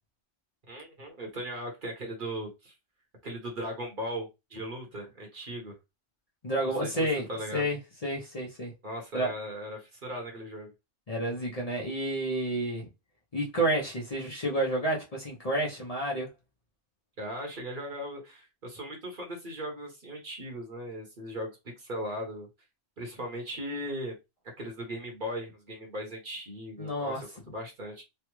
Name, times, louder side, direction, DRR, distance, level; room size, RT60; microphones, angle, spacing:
voice 1, 0.7-2.7 3.2-5.8 6.6-7.7 8.8-10.7 17.2-21.5 21.8-22.5 23.0-24.2 24.6-28.0, equal, 45° right, 1.2 m, -38 dB
voice 2, 6.4-7.3 7.5-8.7 9.1-9.3 11.1-12.9 13.3-16.3 26.8-27.2, right 1 dB, 35° left, 0.8 m, -30 dB
3.4 x 2.3 x 3.0 m
omnidirectional pair, 1.2 m